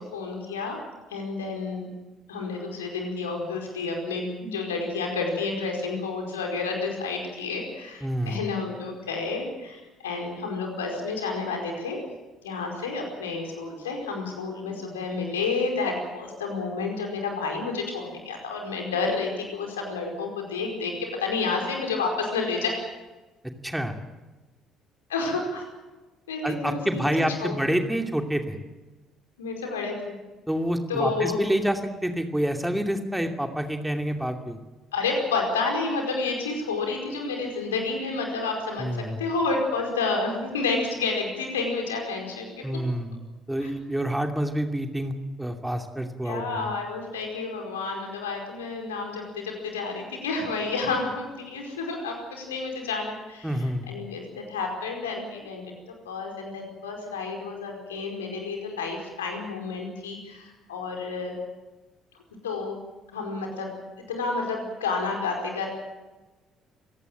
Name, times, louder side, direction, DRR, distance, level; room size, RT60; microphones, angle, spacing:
voice 1, 0.1-0.8 1.1-1.8 2.3-12.0 12.4-22.8 25.1-25.6 26.3-27.1 27.4-27.5 29.4-30.2 30.9-31.4 34.9-42.7 43.6-43.7 46.2-61.3 62.4-62.8 63.1-63.8 64.1-65.7, left 4 dB, 75° left, 2 dB, 4.9 m, -30 dB
voice 2, 8.0-8.4 23.6-23.9 26.4-28.6 30.5-34.6 38.8-39.2 42.6-43.2 43.5-46.7 53.4-53.9, equal, 5° right, 4 dB, 2.7 m, -28 dB
28.0 x 17.0 x 7.7 m, 1.2 s
figure-of-eight pair, 50°, 0 cm